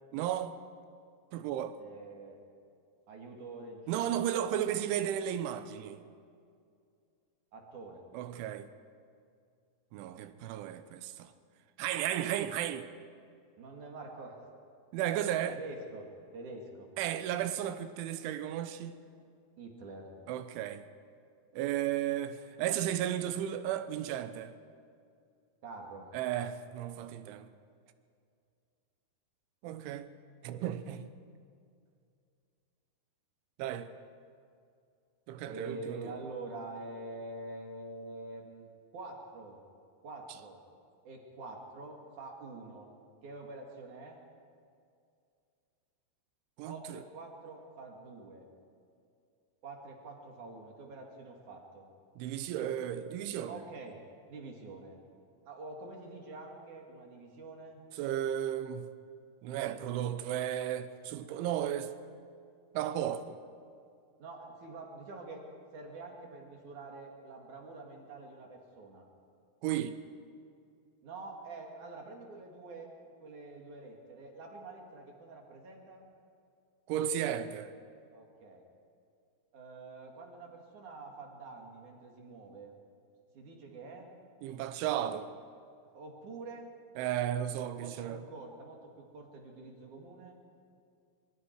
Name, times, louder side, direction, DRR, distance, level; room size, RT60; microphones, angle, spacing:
voice 1, 0.1-0.5 1.3-1.8 3.9-6.0 8.1-8.7 9.9-11.3 11.8-12.9 14.9-15.6 17.0-19.0 20.3-20.9 21.5-24.5 26.1-27.5 29.6-30.1 30.4-31.1 33.6-33.9 35.3-36.1 46.6-47.0 52.2-53.6 58.0-58.9 59.4-61.9 62.7-63.4 69.6-70.0 76.9-77.7 84.4-85.3 87.0-88.2, right 11 dB, 90° right, 3.3 m, -34 dB
voice 2, 1.8-2.4 3.1-4.7 7.5-8.0 13.6-14.4 15.5-16.0 16.3-16.9 19.6-20.2 25.6-26.1 35.4-38.7 38.9-39.6 40.0-40.6 41.0-42.9 43.2-44.2 46.6-48.5 49.6-51.9 53.5-54.0 54.3-55.0 55.4-57.8 64.2-65.5 65.7-69.1 71.0-72.9 73.2-76.1 78.1-78.6 79.5-82.8 83.3-84.1 85.9-86.7 87.8-90.4, right 3 dB, 50° right, 3.1 m, -46 dB
25.0 x 23.0 x 4.7 m
omnidirectional pair, 5.3 m